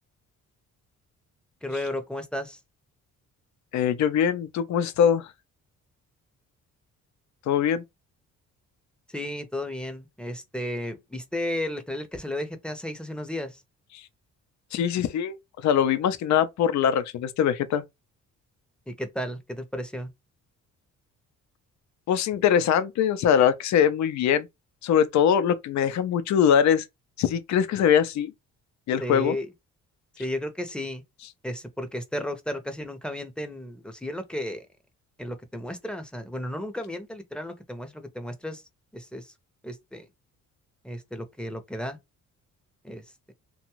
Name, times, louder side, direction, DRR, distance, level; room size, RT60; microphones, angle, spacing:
voice 1, 1.6-2.6 9.1-13.6 18.9-20.1 29.0-29.5 30.2-31.0 31.4-34.6 35.2-38.6 38.9-39.3 39.6-40.1 40.8-42.0 42.8-43.0, left 1 dB, 5° left, 0.7 m, -33 dB
voice 2, 3.7-5.3 7.5-7.8 13.9-14.0 14.7-15.4 15.6-17.8 22.1-24.5 24.8-26.8 27.2-28.3 28.9-29.4, left 8 dB, 65° left, 0.6 m, -22 dB
2.5 x 2.3 x 2.9 m
cardioid pair, 90°, 30 cm